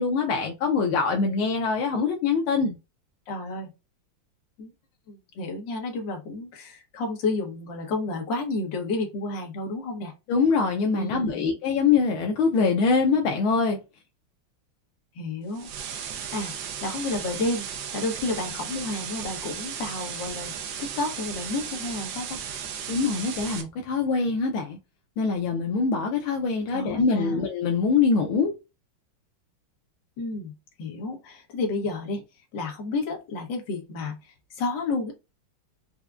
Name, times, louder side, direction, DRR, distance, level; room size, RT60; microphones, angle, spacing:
voice 1, 0.0-2.8 10.3-13.8 22.9-24.8 25.2-28.5, left 5 dB, 80° left, 1.4 m, -24 dB
voice 2, 3.3-3.7 4.6-4.7 5.1-10.1 10.9-11.5 15.1-15.7 16.3-16.5 16.8-17.7 17.9-20.5 20.8-22.4 26.7-27.4 30.2-32.2 32.5-35.1, left 2 dB, 60° left, 1.6 m, -31 dB
sound 1, 15.5-23.6, right 8 dB, 70° right, 1.2 m, -35 dB
4.7 x 2.1 x 2.4 m
omnidirectional pair, 2.3 m